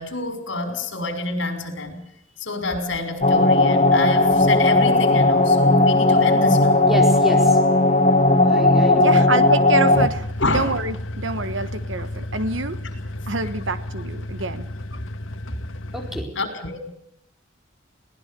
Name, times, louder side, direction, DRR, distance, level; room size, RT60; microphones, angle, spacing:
voice 1, 0.0-2.0 2.4-6.8 10.4-10.8 16.3-16.9, left 2 dB, 70° left, 7 dB, 5.9 m, -27 dB
sound 1, 3.2-10.1, left 2 dB, 35° left, 1.4 m, -16 dB
voice 2, 6.8-7.6 8.4-9.2 15.9-16.3, equal, ahead, 2 dB, 4.4 m, -27 dB
voice 3, 9.0-12.8 13.3-14.7, right 3 dB, 75° right, 11 dB, 1.3 m, -27 dB
sound 2, 9.9-16.2, left 1 dB, 85° left, 1.6 m, -32 dB
22.0 x 19.5 x 6.9 m, 0.77 s
head